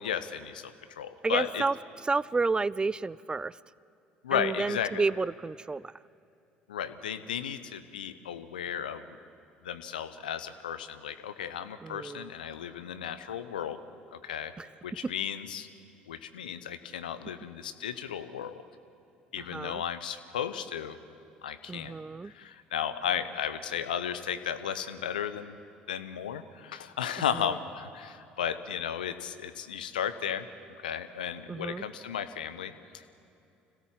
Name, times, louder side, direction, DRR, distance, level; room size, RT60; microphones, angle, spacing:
voice 1, 0.0-1.6 4.2-5.0 6.7-9.2 9.6-13.8 14.1-14.5 14.8-15.7 16.1-18.6 19.3-21.0 21.4-21.9 22.2-25.6 25.9-30.5 30.8-33.1, left 8 dB, 80° left, 11 dB, 0.9 m, -34 dB
voice 2, 1.2-3.6 4.3-5.9 11.8-12.3 14.6-14.7 15.0-15.1 19.4-19.8 21.7-22.3 27.3-27.5 31.5-31.8, right 3 dB, 20° right, 22 dB, 0.4 m, -31 dB
25.5 x 16.5 x 7.4 m, 2.8 s
figure-of-eight pair, 60°, 5 cm